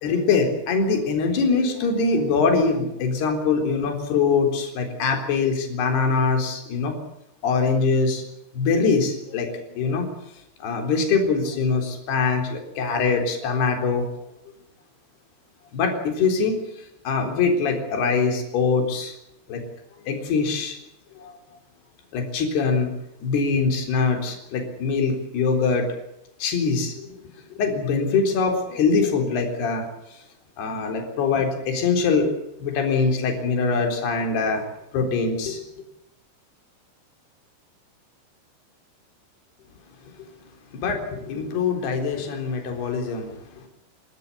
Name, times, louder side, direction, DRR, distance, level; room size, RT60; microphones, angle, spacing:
voice 1, 0.0-6.9 7.4-8.2 8.5-10.1 10.6-14.1 15.7-16.6 17.1-19.1 19.5-19.6 20.1-20.8 21.2-21.3 22.1-22.9 23.2-25.9 26.4-27.1 27.6-29.9 30.6-34.6 34.9-35.6 40.7-43.3 43.6-43.7, left 4 dB, 60° left, 4 dB, 5.8 m, -23 dB
29.0 x 13.0 x 9.9 m, 0.85 s
omnidirectional pair, 5.6 m